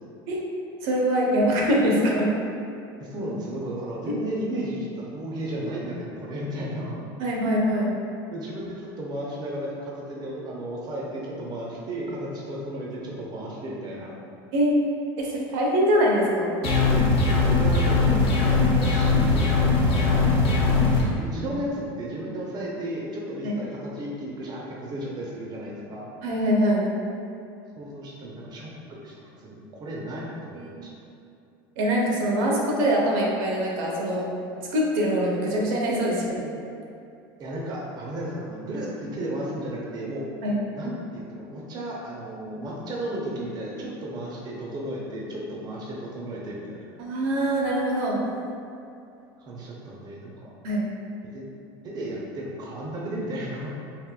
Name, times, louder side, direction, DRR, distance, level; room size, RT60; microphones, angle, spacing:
voice 1, 0.8-2.3 4.1-4.2 7.2-7.9 14.5-14.8 15.2-16.5 23.4-23.6 26.2-26.9 30.5-30.8 31.8-34.2 34.6-36.5 40.4-40.6 47.0-48.2 50.6-50.8, equal, 70° right, -2 dB, 0.7 m, -23 dB
voice 2, 3.0-7.0 8.3-14.2 17.5-19.5 19.8-26.1 27.8-30.9 37.4-40.3 40.8-46.8 49.4-50.5 51.3-51.5 51.8-53.7, right 1 dB, 35° right, -4 dB, 0.6 m, -34 dB
sound 1, 16.6-21.0, left 3 dB, 50° left, 0.8 m, -20 dB
3.6 x 2.5 x 2.3 m, 2.6 s
hypercardioid pair, 100°, 12 cm